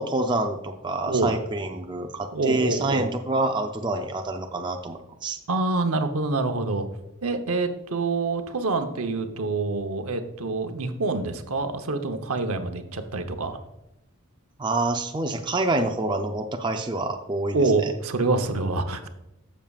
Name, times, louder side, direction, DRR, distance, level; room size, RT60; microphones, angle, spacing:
voice 1, 0.0-5.4 14.6-17.9, right 2 dB, 20° right, 4 dB, 0.5 m, -27 dB
voice 2, 2.3-3.1 5.5-6.9 7.2-13.6 17.5-19.1, right 3 dB, 80° right, 6 dB, 0.9 m, -26 dB
12.5 x 7.4 x 2.4 m, 0.93 s
head